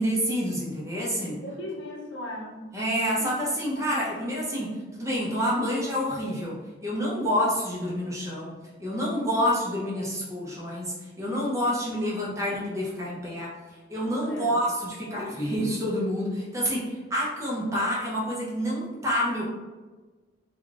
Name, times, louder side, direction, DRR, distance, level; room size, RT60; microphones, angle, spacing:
voice 1, 0.0-1.4 2.7-13.5 13.9-19.4, equal, 15° right, -5 dB, 0.8 m, -28 dB
voice 2, 1.4-2.6 3.1-3.4 3.8-3.9 12.3-12.4 14.2-14.6, left 1 dB, 65° left, -1 dB, 0.7 m, -38 dB
3.8 x 2.4 x 3.5 m, 1.3 s
head